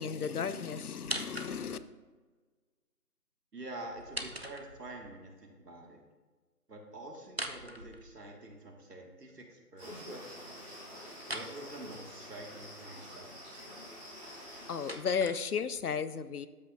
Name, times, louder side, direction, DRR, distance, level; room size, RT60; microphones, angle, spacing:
voice 1, 0.0-1.8 14.7-16.5, left 6 dB, 70° left, 14 dB, 0.6 m, -34 dB
sound 1, 1.0-1.9 3.9-5.1 7.2-8.6 11.2-11.6 14.3-15.9, right 1 dB, 45° right, 0.5 m, -42 dB
voice 2, 3.5-6.0 6.7-10.2 10.5-10.6 10.9-13.3, right 2 dB, 85° right, 1 dB, 2.0 m, -47 dB
sound 2, 9.8-14.9, equal, 5° right, 2.0 m, -47 dB
12.5 x 5.7 x 2.6 m, 1.3 s
figure-of-eight pair, 170°, 47 cm